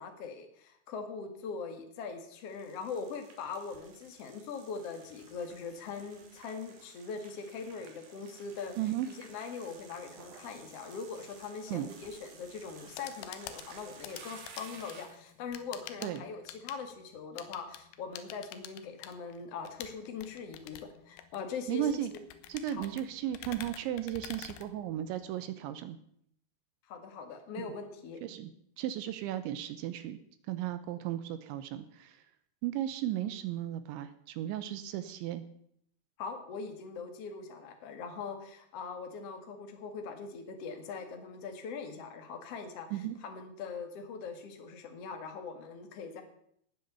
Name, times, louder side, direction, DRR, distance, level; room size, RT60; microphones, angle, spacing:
voice 1, 0.0-8.8 9.1-20.8 21.0-22.2 22.8-22.9 26.9-28.2 36.2-46.2, left 5 dB, 70° left, 5 dB, 1.4 m, -41 dB
sound 1, 2.3-15.3, right 5 dB, 50° right, 3.5 m, -54 dB
voice 2, 8.8-9.1 11.7-11.9 16.0-16.2 21.7-22.1 22.5-26.0 27.6-27.7 28.2-28.5 28.8-30.2 30.5-32.2 32.6-35.4 42.9-43.2, right 12 dB, 80° right, 11 dB, 2.8 m, -35 dB
sound 2, 12.9-25.3, left 11 dB, 90° left, 3.8 m, -48 dB
18.5 x 8.0 x 6.9 m, 0.70 s
omnidirectional pair, 5.9 m